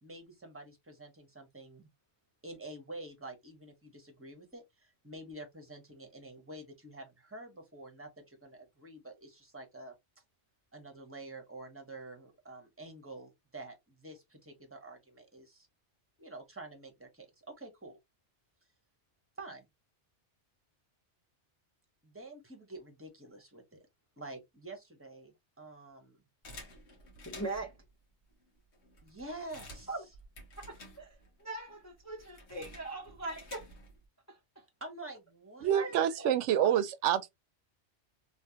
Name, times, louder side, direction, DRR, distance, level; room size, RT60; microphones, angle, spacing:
voice 1, 0.0-1.9 2.4-10.0 10.7-15.7 16.2-18.0 19.4-19.7 22.0-23.8 24.2-26.2 29.0-29.9 34.8-36.0, right 2 dB, 10° right, 1.0 m, -48 dB
sound 1, 26.4-27.8 28.4-28.5 28.7-31.4 31.7-34.0, left 1 dB, 70° left, 1.5 m, -51 dB
voice 2, 27.3-27.7 29.9-30.1 30.7-31.1 31.4-33.7 34.3-34.6 35.7-36.3 36.6-36.7, right 2 dB, 20° left, 0.6 m, -40 dB
voice 3, 35.6-37.3, right 10 dB, 90° right, 0.9 m, -27 dB
3.3 x 3.0 x 2.8 m
omnidirectional pair, 1.2 m